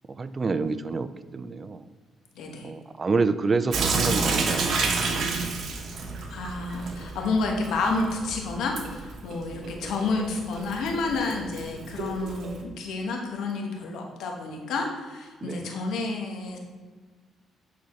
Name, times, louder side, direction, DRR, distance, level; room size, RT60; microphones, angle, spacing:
voice 1, 0.1-1.8 2.6-4.9 5.3-5.4 15.4-15.7, right 4 dB, 35° right, 12 dB, 0.3 m, -28 dB
voice 2, 2.3-2.7 6.3-16.6, left 3 dB, 80° left, 2 dB, 1.1 m, -30 dB
Sink (filling or washing) / Drip, 3.7-12.6, right 4 dB, 65° right, 0.8 m, -30 dB
8.6 x 4.1 x 3.1 m, 1.4 s
cardioid pair, 90°, 0 cm